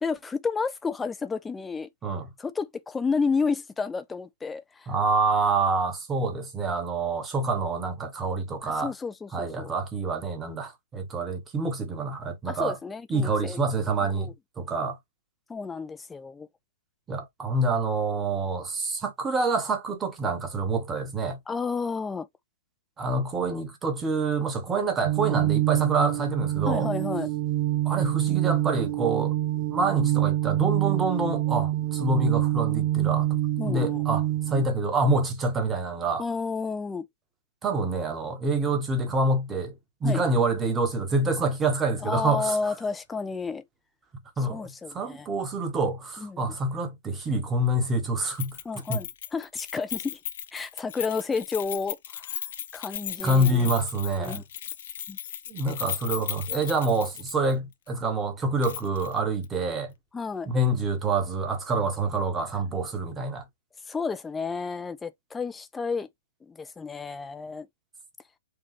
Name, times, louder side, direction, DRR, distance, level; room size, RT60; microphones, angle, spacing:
voice 1, 0.0-1.9 2.4-4.9 8.6-9.7 12.5-13.6 14.0-14.3 15.5-16.5 21.5-22.3 26.7-27.3 33.6-34.0 36.2-37.1 40.0-40.2 42.0-43.6 44.4-45.3 46.2-46.6 48.6-50.2 50.5-52.4 52.7-53.7 54.2-54.4 55.1-55.2 60.1-60.5 63.9-66.1 66.4-67.7, left 4 dB, 10° left, 0.6 m, -31 dB
voice 2, 4.9-8.9 9.3-12.8 13.1-14.3 14.6-15.0 17.1-21.4 23.0-26.9 27.8-29.3 29.7-33.4 33.6-36.2 37.6-39.7 40.0-42.7 44.4-48.6 48.9-49.0 53.2-54.4 55.5-59.9 60.5-63.4, right 2 dB, 15° right, 1.4 m, -27 dB
sound 1, 25.0-34.6, right 14 dB, 40° right, 0.7 m, -26 dB
Keys jangling, 48.4-57.5 57.9-58.0 58.6-59.1 59.4-59.5, left 10 dB, 50° left, 0.6 m, -36 dB
4.8 x 2.7 x 3.3 m
figure-of-eight pair, 115°, 0 cm